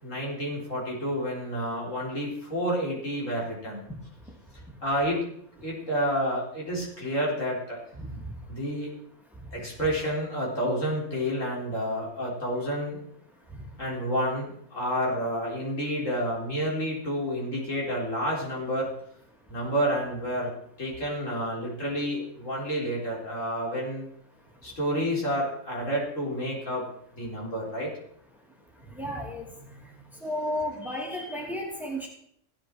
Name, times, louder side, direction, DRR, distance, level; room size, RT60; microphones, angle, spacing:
voice 1, 0.0-3.8 4.8-5.2 5.6-7.8 8.5-8.9 9.5-13.0 13.8-18.9 19.5-20.5 20.8-24.1 24.6-26.8 27.1-27.9, equal, 65° left, -3 dB, 4.6 m, -29 dB
voice 2, 28.9-29.4 30.2-32.1, left 1 dB, ahead, -1 dB, 2.6 m, -32 dB
16.0 x 9.9 x 4.6 m, 0.68 s
omnidirectional pair, 1.4 m